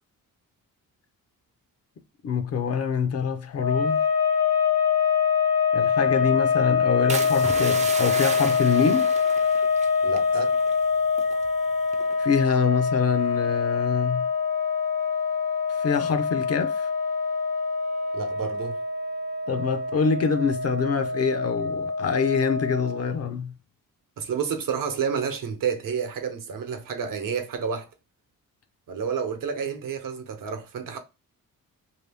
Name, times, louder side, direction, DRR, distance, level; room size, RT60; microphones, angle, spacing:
voice 1, 2.2-4.0 5.7-9.1 12.2-14.3 15.8-16.9 19.5-23.5, left 6 dB, 45° left, 0.5 m, -25 dB
sound 1, 3.5-23.2, left 5 dB, 75° left, 1.3 m, -25 dB
sound 2, 7.1-10.8 11.1-11.5 11.9-12.2, right 4 dB, 20° right, 0.4 m, -34 dB
voice 2, 10.0-10.5 18.1-18.8 24.2-27.9 28.9-31.0, right 6 dB, 65° right, 0.9 m, -30 dB
3.0 x 2.7 x 3.4 m
wide cardioid pair, 155°, 35 cm